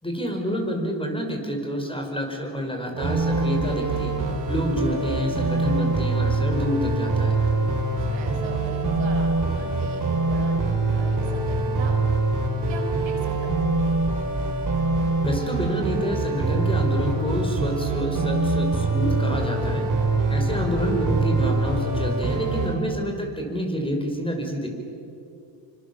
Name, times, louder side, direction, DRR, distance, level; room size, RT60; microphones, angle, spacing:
voice 1, 0.0-4.2 4.5-7.4 15.2-19.9 20.3-24.7, equal, 10° left, 2 dB, 5.3 m, -28 dB
sound 1, 3.0-22.8, right 2 dB, 40° right, 5.3 m, -24 dB
voice 2, 4.6-5.2 8.0-12.2 12.5-13.5, right 3 dB, 65° right, 2 dB, 5.0 m, -39 dB
25.5 x 25.0 x 7.3 m, 2.6 s
cardioid pair, 85°, 50 cm